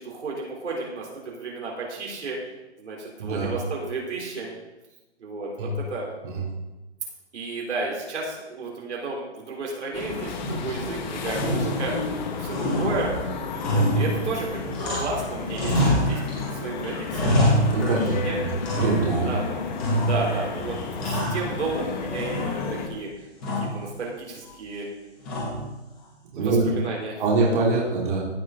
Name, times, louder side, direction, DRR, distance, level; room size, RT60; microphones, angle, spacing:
voice 1, 0.0-2.4 2.8-4.5 5.2-6.1 7.3-12.1 12.4-13.1 13.5-17.3 17.8-18.4 19.1-19.6 20.0-23.1 23.6-24.9 26.4-27.2, right 3 dB, 75° right, -3 dB, 3.9 m, -32 dB
sound 1, 9.9-22.9, left 5 dB, 40° left, 1.2 m, -33 dB
sound 2, 10.4-10.9 11.3-12.2 12.5-15.2 15.5-16.5 16.8-18.2 18.6-19.3 19.8-20.4 20.7-21.8 22.1-22.8 23.4-23.8 25.2-25.8, equal, 5° left, 0.4 m, -26 dB
voice 2, 17.7-19.3 26.3-26.8 27.2-28.2, right 3 dB, 45° right, -5 dB, 3.2 m, -24 dB
16.0 x 5.5 x 3.9 m, 1.0 s
hypercardioid pair, 160°, 35 cm